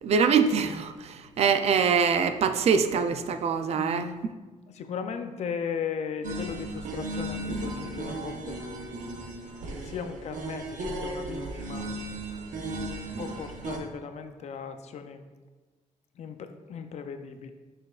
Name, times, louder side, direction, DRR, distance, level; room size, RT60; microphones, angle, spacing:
voice 1, 0.0-4.1, right 6 dB, 55° right, 9 dB, 0.4 m, -24 dB
voice 2, 3.7-4.2 4.7-8.6 9.9-11.9 13.2-15.2 16.2-17.5, left 6 dB, 60° left, 8 dB, 0.4 m, -37 dB
sound 1, 6.2-13.8, right 1 dB, 85° right, 1.0 m, -35 dB
6.5 x 6.2 x 2.4 m, 1.3 s
wide cardioid pair, 165°, 13 cm